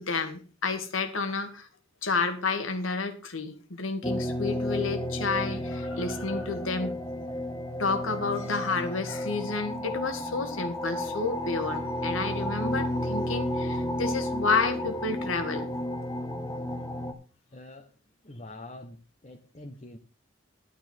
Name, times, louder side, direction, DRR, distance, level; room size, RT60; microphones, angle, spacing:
voice 1, 0.0-1.7 2.0-7.0 7.8-15.7, left 4 dB, 85° left, 8 dB, 2.0 m, -30 dB
sound 1, 4.0-17.1, left 1 dB, 15° left, 1.3 m, -32 dB
voice 2, 17.5-17.9 18.2-20.0, left 1 dB, 35° left, 3 dB, 1.2 m, -45 dB
12.0 x 9.4 x 4.5 m, 0.35 s
head